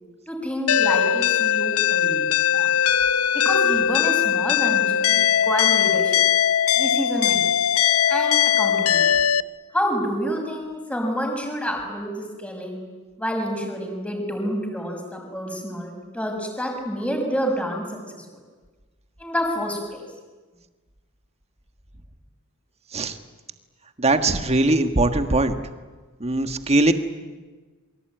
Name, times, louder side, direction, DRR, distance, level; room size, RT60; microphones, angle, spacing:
voice 1, 0.3-2.3 2.5-2.7 3.3-6.2 6.8-7.4 8.1-9.2 9.7-12.8 13.2-17.8 18.1-18.4 19.2-20.0, equal, 5° left, 2 dB, 6.0 m, -28 dB
sound 1, 0.7-9.4, left 9 dB, 75° left, 0.8 m, -20 dB
voice 2, 24.0-25.5 26.2-26.9, right 2 dB, 30° right, 8 dB, 1.7 m, -20 dB
27.0 x 23.5 x 9.3 m, 1.3 s
head